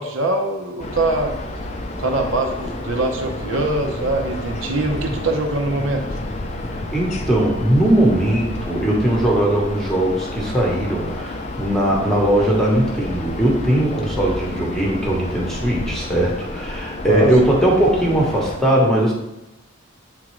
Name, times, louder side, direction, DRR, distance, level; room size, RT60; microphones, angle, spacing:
voice 1, 0.0-1.3 2.0-6.2 17.1-17.5, right 2 dB, 60° right, 2 dB, 0.7 m, -23 dB
sound 1, 0.8-18.6, left 1 dB, 30° left, 0.4 m, -30 dB
voice 2, 6.9-19.1, right 1 dB, ahead, -3 dB, 1.0 m, -19 dB
8.5 x 3.7 x 3.1 m, 0.95 s
head